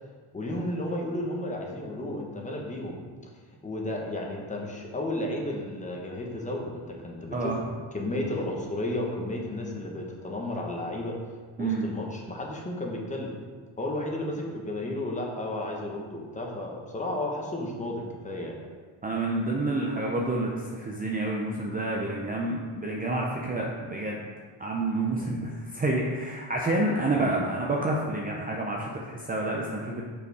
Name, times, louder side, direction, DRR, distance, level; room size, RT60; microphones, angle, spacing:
voice 1, 0.3-3.0 3.6-7.5 7.9-11.2 11.6-13.3 13.8-18.6 25.0-25.4 27.1-27.5, left 1 dB, 15° left, -1 dB, 1.2 m, -33 dB
voice 2, 19.0-24.2 24.6-30.0, right 2 dB, 20° right, -2 dB, 0.6 m, -29 dB
6.8 x 5.6 x 4.8 m, 1.5 s
cardioid pair, 150°, 47 cm